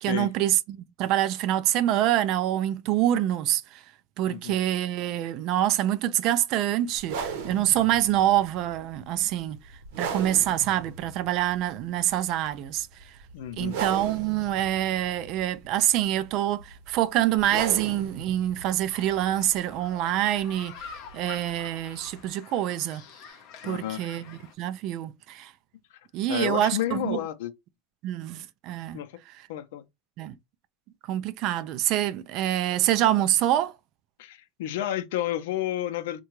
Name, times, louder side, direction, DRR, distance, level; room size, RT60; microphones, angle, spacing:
voice 1, 0.0-3.8 4.2-9.6 10.0-12.9 13.6-23.0 23.6-25.5 26.1-27.2 28.0-29.0 30.2-30.4 31.1-33.7, right 12 dB, 40° right, 0.3 m, -26 dB
voice 2, 4.2-4.6 13.3-13.8 23.6-24.0 26.3-27.5 28.9-29.2 29.5-29.8 34.2-36.2, left 12 dB, 75° left, 0.5 m, -31 dB
sound 1, 7.0-22.3, right 6 dB, 60° right, 0.9 m, -39 dB
sound 2, 18.9-24.5, left 7 dB, 40° left, 0.7 m, -47 dB
3.7 x 2.2 x 3.0 m
supercardioid pair, 170°, 0 cm